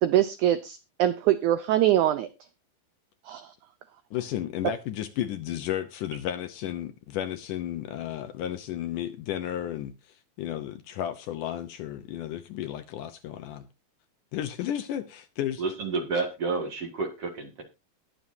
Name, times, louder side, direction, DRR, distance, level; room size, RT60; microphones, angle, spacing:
voice 1, 0.0-2.3 3.2-3.5, right 12 dB, 80° right, 1.8 m, -23 dB
voice 2, 4.1-13.7 14.3-15.6, left 11 dB, 75° left, 2.1 m, -33 dB
voice 3, 15.6-17.6, right 3 dB, 45° right, 2.8 m, -30 dB
20.5 x 7.0 x 2.7 m
omnidirectional pair, 4.3 m